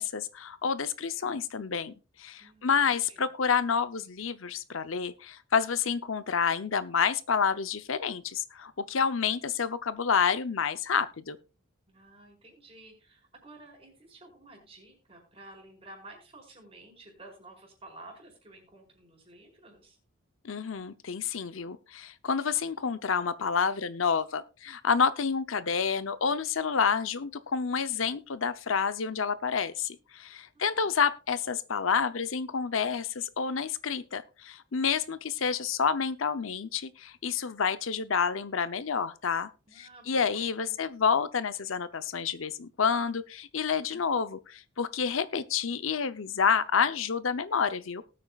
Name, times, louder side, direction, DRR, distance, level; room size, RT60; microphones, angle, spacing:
voice 1, 0.0-11.4 20.4-39.5 39.8-48.0, left 6 dB, 75° left, 0.7 m, -29 dB
voice 2, 2.4-3.3 11.9-20.0 30.5-30.7 31.3-31.4 39.7-40.9, right 2 dB, 30° right, 4.8 m, -52 dB
19.0 x 8.7 x 2.4 m
head